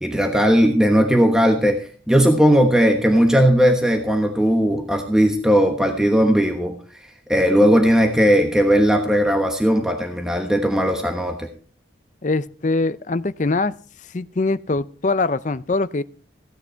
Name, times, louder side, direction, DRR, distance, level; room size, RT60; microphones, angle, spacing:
voice 1, 0.0-6.7 7.3-11.5, equal, 5° right, 3 dB, 1.1 m, -17 dB
voice 2, 12.2-13.7 14.1-16.0, left 3 dB, 40° left, 14 dB, 0.5 m, -22 dB
16.0 x 9.8 x 4.5 m, 0.43 s
head